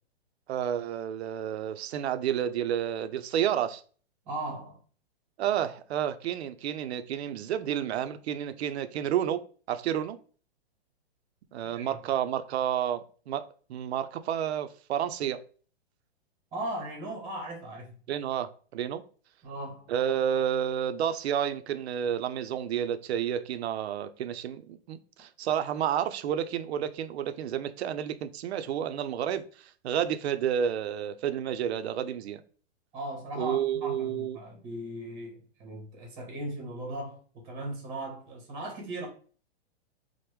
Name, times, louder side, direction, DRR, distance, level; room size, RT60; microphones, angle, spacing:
voice 1, 0.5-3.8 5.4-9.4 9.7-10.2 11.5-15.4 18.1-19.0 19.9-32.4 33.4-34.4, right 9 dB, 80° right, 0.5 m, -30 dB
voice 2, 4.3-4.8 11.6-11.9 16.5-18.0 19.4-19.9 32.9-39.1, right 1 dB, 25° right, 0.8 m, -38 dB
3.0 x 2.1 x 3.2 m
hypercardioid pair, 150°, 32 cm